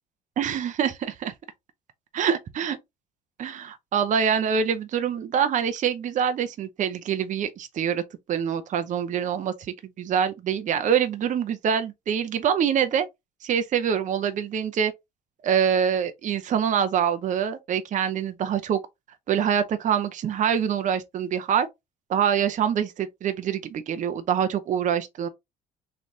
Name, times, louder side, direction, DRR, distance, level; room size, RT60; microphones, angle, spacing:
voice 1, 0.4-1.3 2.1-2.8 3.4-8.0 8.3-9.5 10.0-13.1 13.4-14.9 15.4-18.8 19.3-21.7 22.1-25.3, right 8 dB, 45° right, 0.7 m, -25 dB
4.0 x 3.3 x 2.9 m
cardioid pair, 110°, 17 cm